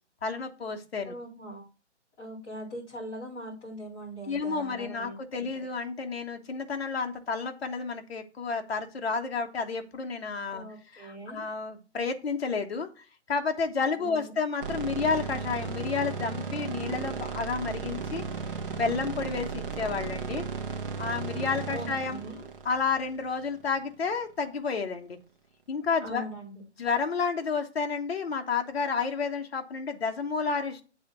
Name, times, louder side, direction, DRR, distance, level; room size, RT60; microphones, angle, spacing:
voice 1, 0.2-1.1 4.3-10.6 10.9-12.9 13.3-18.2 18.7-20.4 21.0-22.2 22.6-25.2 25.7-26.3 26.8-30.8, left 5 dB, 60° left, 4 dB, 1.4 m, -31 dB
voice 2, 1.0-1.7 2.2-5.6 10.5-11.4 13.9-14.3 21.7-22.5 26.0-26.5, right 1 dB, 20° left, -7 dB, 4.4 m, -41 dB
sound 1, 14.6-23.8, right 5 dB, 50° right, 1.5 m, -35 dB
7.8 x 3.9 x 5.9 m, 0.34 s
hypercardioid pair, 175°, 35 cm